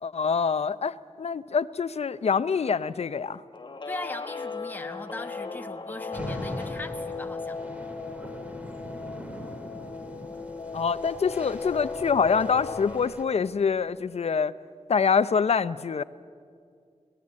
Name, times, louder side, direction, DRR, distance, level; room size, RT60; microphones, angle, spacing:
voice 1, 0.0-3.4 10.7-14.5 14.9-16.0, left 6 dB, 60° left, 15 dB, 0.6 m, -25 dB
Guitar, 3.5-13.0, left 4 dB, 40° left, 1.0 m, -37 dB
voice 2, 3.8-7.6, left 2 dB, 15° left, 5 dB, 1.1 m, -39 dB
sound 1, 6.1-13.2, equal, 10° right, 2.2 m, -41 dB
25.5 x 18.5 x 8.6 m, 2.2 s
wide cardioid pair, 115°, 12 cm